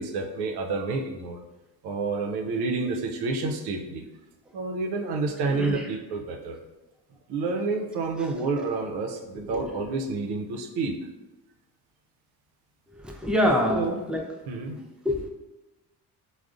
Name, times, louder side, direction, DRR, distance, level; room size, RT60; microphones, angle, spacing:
voice 1, 0.0-1.4 1.8-4.1 4.5-6.6 7.3-10.9 13.7-14.0 14.5-14.8, right 3 dB, 75° right, 4 dB, 0.6 m, -29 dB
voice 2, 5.4-6.0 8.2-8.7 9.3-9.8 12.9-14.2 15.0-15.3, left 1 dB, ahead, 1 dB, 0.4 m, -27 dB
3.5 x 2.1 x 2.4 m, 1.1 s
supercardioid pair, 75°, 39 cm